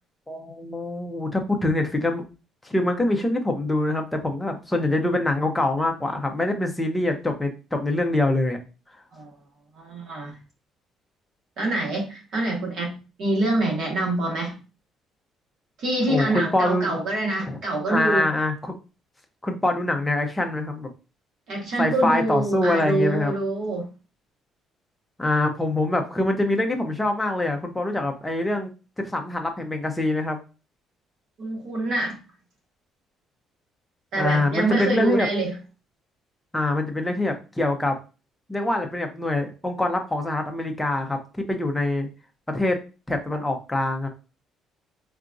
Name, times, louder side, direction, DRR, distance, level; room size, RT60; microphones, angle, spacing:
voice 1, 0.3-2.2 2.6-8.6 16.1-17.0 17.4-17.6 17.9-18.8 19.4-20.9 21.8-23.3 25.2-28.7 29.0-30.4 34.2-35.3 36.5-37.9 38.5-42.1 42.5-42.8 43.1-44.1, left 2 dB, 10° left, 3 dB, 0.5 m, -24 dB
voice 2, 9.8-10.3 11.6-14.5 15.8-18.3 21.5-23.9 31.4-32.2 34.1-35.6, right 2 dB, 55° right, -1 dB, 1.2 m, -25 dB
3.8 x 2.3 x 2.5 m, 0.32 s
cardioid pair, 155°, 0 cm